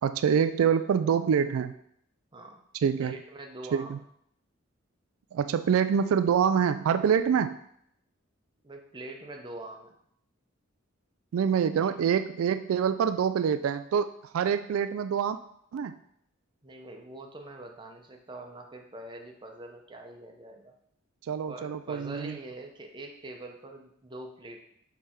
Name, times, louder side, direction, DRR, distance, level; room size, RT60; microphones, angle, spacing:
voice 1, 0.0-1.7 2.8-3.1 3.7-4.0 5.3-7.6 11.3-15.4 15.7-15.9 21.3-22.3, right 7 dB, 90° right, 11 dB, 0.3 m, -26 dB
voice 2, 2.3-2.6 3.0-4.0 8.6-9.9 11.8-11.9 16.6-20.7 21.5-24.6, right 2 dB, 25° right, 2 dB, 0.7 m, -44 dB
6.4 x 3.4 x 4.3 m, 0.71 s
head